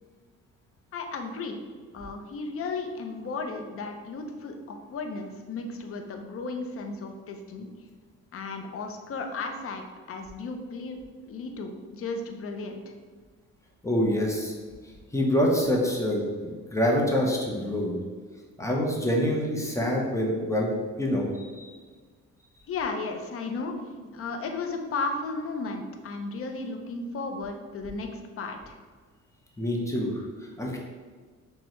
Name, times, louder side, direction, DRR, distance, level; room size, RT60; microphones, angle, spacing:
voice 1, 0.9-1.6 1.9-7.7 8.3-11.0 11.3-12.9 22.7-23.7 24.1-28.8, left 3 dB, 50° left, 4 dB, 0.6 m, -34 dB
voice 2, 13.8-14.6 15.1-18.0 18.6-20.7 21.0-21.7 29.6-30.8, equal, 10° left, -1 dB, 0.8 m, -26 dB
6.1 x 2.2 x 3.1 m, 1.5 s
cardioid pair, 90°, 30 cm